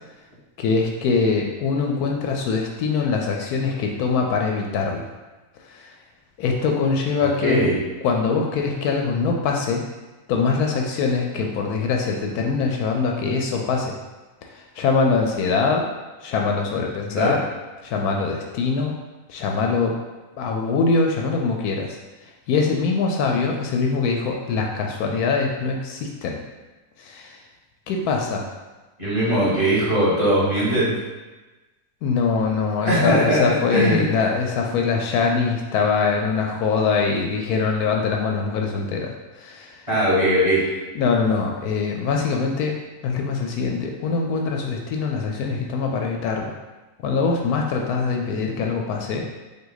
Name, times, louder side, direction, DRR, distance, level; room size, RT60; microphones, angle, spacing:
voice 1, 0.6-5.1 5.7-5.9 6.4-7.7 8.0-9.8 10.3-14.0 14.5-15.9 16.2-17.4 17.8-19.0 19.3-20.0 20.4-26.4 27.0-27.4 27.9-28.4 32.0-39.8 40.9-42.8 43.0-46.5 47.0-49.2, left 4 dB, 75° left, 1 dB, 1.0 m, -23 dB
voice 2, 7.2-7.8 17.1-17.4 29.0-30.9 32.8-33.4 33.7-34.0 39.9-40.8, right 1 dB, 20° right, -9 dB, 1.6 m, -20 dB
5.2 x 2.6 x 3.9 m, 1.2 s
omnidirectional pair, 1.7 m